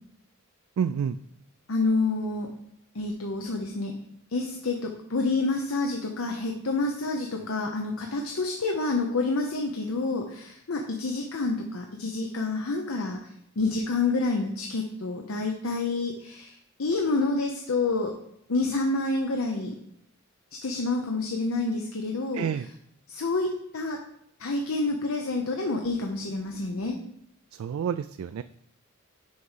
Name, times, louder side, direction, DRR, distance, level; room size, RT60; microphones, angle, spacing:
voice 1, 0.8-1.2 22.3-22.7 27.6-28.4, right 7 dB, 85° right, 12 dB, 0.3 m, -28 dB
voice 2, 1.7-2.5 2.9-3.9 4.3-13.3 13.6-18.1 18.5-19.7 20.6-22.4 23.1-24.0 24.4-27.0, left 3 dB, 80° left, 2 dB, 0.8 m, -28 dB
6.3 x 4.8 x 5.6 m, 0.72 s
head